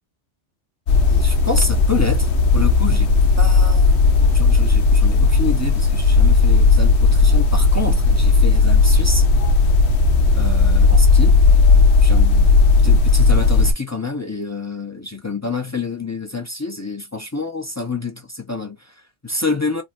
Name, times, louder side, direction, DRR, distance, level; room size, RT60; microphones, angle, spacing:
sound 1, 0.9-13.7, left 3 dB, 70° left, 0.9 m, -14 dB
voice 1, 1.1-3.9 4.2-9.3 10.3-11.4 12.0-12.5 12.8-19.8, left 3 dB, 20° left, 0.5 m, -28 dB
3.6 x 2.1 x 2.5 m
omnidirectional pair, 1.2 m